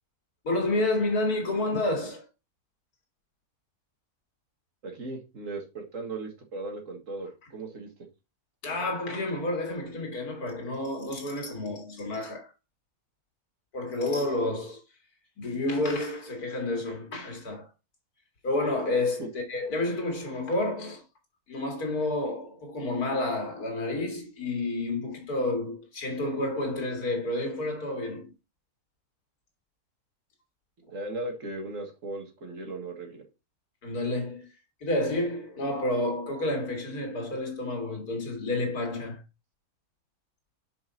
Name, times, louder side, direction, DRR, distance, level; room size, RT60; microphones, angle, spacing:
voice 1, 0.4-2.3 8.6-12.5 13.7-14.8 15.4-17.7 18.4-21.0 21.5-28.3 33.8-34.5 34.8-39.2, left 2 dB, 85° left, 2.5 m, -30 dB
voice 2, 4.8-7.9 19.2-19.3 30.9-33.2, right 2 dB, 60° right, 2.1 m, -37 dB
6.0 x 5.2 x 4.1 m
omnidirectional pair, 1.6 m